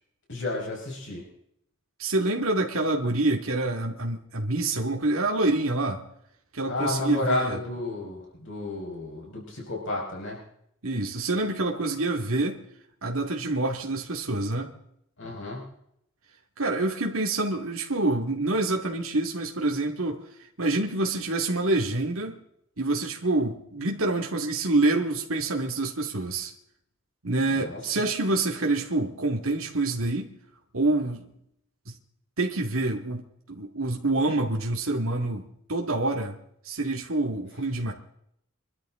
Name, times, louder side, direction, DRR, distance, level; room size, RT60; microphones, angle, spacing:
voice 1, 0.3-1.3 6.7-10.4 15.2-15.6 27.5-27.8, left 2 dB, 60° left, 5.2 m, -31 dB
voice 2, 2.0-6.0 6.5-7.6 10.8-12.6 13.0-14.7 16.6-20.2 20.6-22.4 22.8-26.5 27.2-30.3 30.7-31.3 32.4-36.4 36.6-37.9, right 2 dB, 75° right, 2.3 m, -27 dB
25.5 x 13.0 x 3.8 m
head